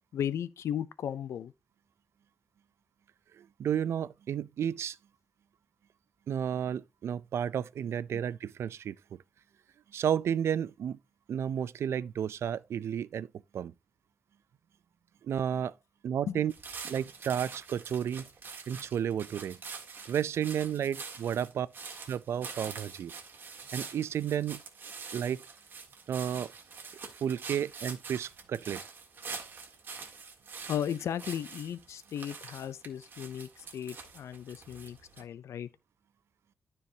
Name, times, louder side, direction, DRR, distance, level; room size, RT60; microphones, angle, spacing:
voice 1, 0.1-1.5 8.1-8.2 16.3-16.4 30.7-35.7, left 9 dB, 90° left, 0.4 m, -36 dB
voice 2, 3.4-5.0 6.3-9.2 9.9-11.0 11.3-13.3 13.5-13.7 15.2-15.7 16.0-16.5 16.9-18.3 18.7-19.6 20.1-21.7 22.1-23.1 23.7-24.6 25.1-25.4 26.1-26.5 27.2-28.8, right 9 dB, 70° right, 0.4 m, -32 dB
sound 1, 16.5-35.2, right 5 dB, 45° right, 1.7 m, -45 dB
13.0 x 4.6 x 2.7 m
wide cardioid pair, 170°, 5 cm